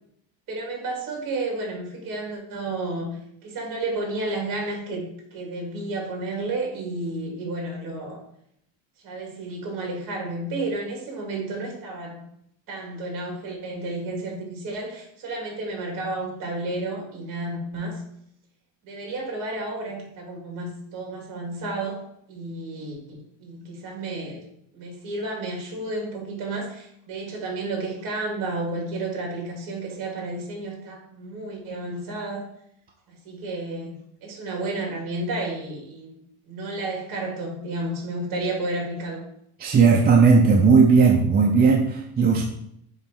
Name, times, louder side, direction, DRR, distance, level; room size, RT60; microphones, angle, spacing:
voice 1, 0.5-8.2 9.0-12.2 12.7-18.0 18.8-22.0 22.3-24.4 24.7-32.5 33.1-36.2 36.5-39.2, right 2 dB, 40° right, -1 dB, 2.8 m, -31 dB
voice 2, 39.6-42.4, right 5 dB, 20° right, 0 dB, 0.5 m, -16 dB
7.3 x 3.2 x 5.4 m, 0.72 s
cardioid pair, 155°, 49 cm